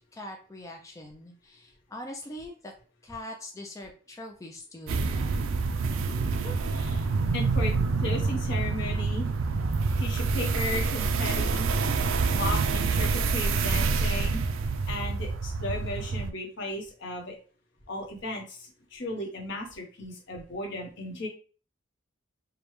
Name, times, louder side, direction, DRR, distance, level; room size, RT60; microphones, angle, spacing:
voice 1, 0.1-2.7 3.0-5.5, left 1 dB, 15° left, 1 dB, 0.4 m, -42 dB
sound 1, 4.9-16.3, right 4 dB, 75° right, 0.4 m, -27 dB
voice 2, 6.4-7.1 7.3-9.3 10.0-11.7 12.3-14.4 14.9-17.4 17.9-21.3, left 1 dB, 60° left, 0 dB, 1.1 m, -35 dB
5.1 x 2.2 x 3.1 m, 0.39 s
head